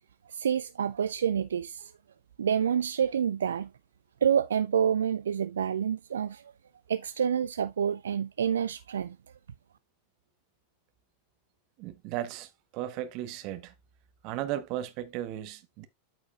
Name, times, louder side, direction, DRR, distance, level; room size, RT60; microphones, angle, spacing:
voice 1, 0.3-1.9 2.4-3.7 4.2-6.4 6.9-9.2, right 8 dB, 65° right, 0.3 m, -28 dB
voice 2, 11.8-13.7 14.2-15.9, right 12 dB, 40° right, 1.2 m, -36 dB
13.0 x 4.6 x 2.4 m
figure-of-eight pair, 90°, 0 cm